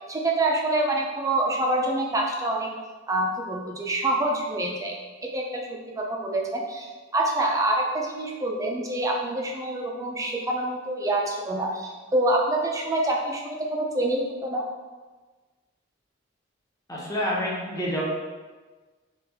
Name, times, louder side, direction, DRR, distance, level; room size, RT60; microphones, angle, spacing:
voice 1, 0.1-2.7 3.1-4.9 5.3-6.9 7.1-14.7, right 1 dB, 15° right, 0 dB, 0.4 m, -26 dB
voice 2, 16.9-18.1, equal, 15° left, -5 dB, 0.7 m, -28 dB
3.2 x 2.4 x 3.4 m, 1.3 s
head